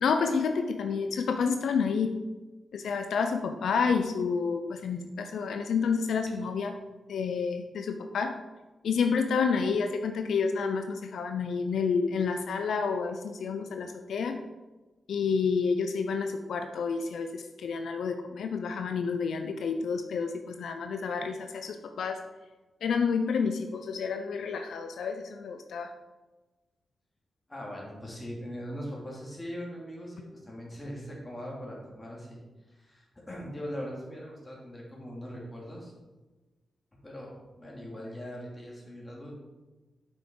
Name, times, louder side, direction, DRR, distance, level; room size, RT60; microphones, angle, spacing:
voice 1, 0.0-2.2 2.7-6.7 7.1-8.3 8.8-14.4 15.1-22.2 22.8-25.9, left 5 dB, 85° left, 6 dB, 0.5 m, -29 dB
voice 2, 27.5-32.4 32.7-35.9 37.0-39.3, equal, 20° left, -3 dB, 2.5 m, -40 dB
7.4 x 6.0 x 3.8 m, 1.2 s
cardioid pair, 100°, 0 cm